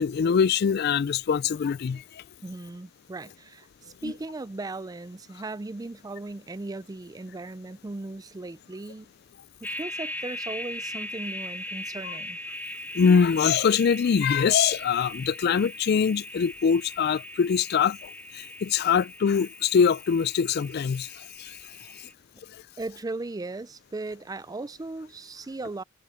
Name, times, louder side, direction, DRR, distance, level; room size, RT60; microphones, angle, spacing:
voice 1, 0.0-2.2 4.0-4.1 12.9-21.6, left 6 dB, 50° left, 0.3 m, -23 dB
voice 2, 2.4-9.1 9.6-12.4 22.8-25.8, right 2 dB, 20° right, 0.4 m, -37 dB
sound 1, 9.6-22.1, left 1 dB, 10° left, 0.9 m, -39 dB
head